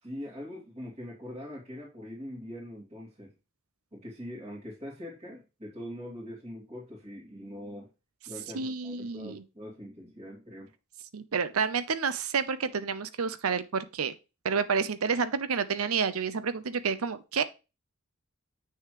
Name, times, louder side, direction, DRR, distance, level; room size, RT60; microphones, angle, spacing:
voice 1, 0.0-3.3 3.9-7.9 8.3-10.7, left 1 dB, 30° right, 2.8 m, -42 dB
voice 2, 8.5-9.4 11.1-14.1 14.4-17.4, right 5 dB, 85° right, 0.7 m, -29 dB
7.9 x 6.5 x 3.1 m
head